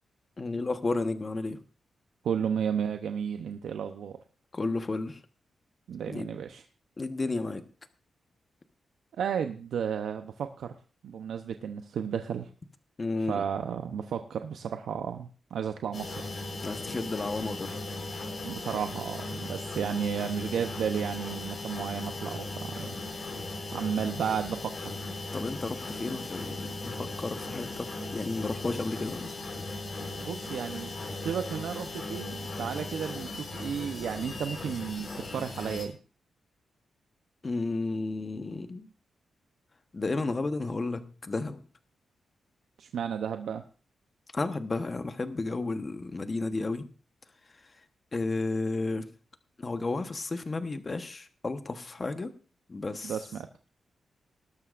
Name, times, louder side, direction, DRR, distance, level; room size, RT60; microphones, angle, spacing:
voice 1, 0.4-1.6 4.5-5.2 6.0-6.4 7.0-7.6 13.0-13.4 16.6-17.7 19.8-19.9 25.3-29.4 37.4-38.9 39.9-41.6 44.3-46.8 48.1-49.1 49.6-52.3 52.7-53.2, left 3 dB, 30° left, 9 dB, 1.1 m, -32 dB
voice 2, 2.2-4.2 5.9-6.6 9.2-10.7 11.0-12.5 13.3-16.2 18.4-23.0 23.7-24.9 30.2-36.0 42.8-43.6 53.0-53.5, right 7 dB, 85° right, 7 dB, 0.7 m, -33 dB
sound 1, 15.9-35.9, left 2 dB, 45° left, 4.2 m, -38 dB
18.5 x 12.5 x 2.5 m, 0.36 s
wide cardioid pair, 135°, 0 cm